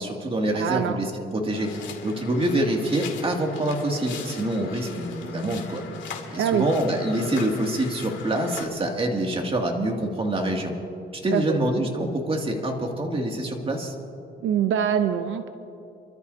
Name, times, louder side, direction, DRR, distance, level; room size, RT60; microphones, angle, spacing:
voice 1, 0.0-5.8 6.3-10.7 11.1-13.9, right 1 dB, 30° right, 1 dB, 2.5 m, -26 dB
voice 2, 0.5-1.0 6.3-6.7 11.3-11.6 14.4-15.5, right 9 dB, 80° right, 9 dB, 0.7 m, -24 dB
sound 1, 1.5-8.7, left 6 dB, 70° left, 2.5 m, -39 dB
28.0 x 13.5 x 2.8 m, 2.7 s
cardioid pair, 90°, 20 cm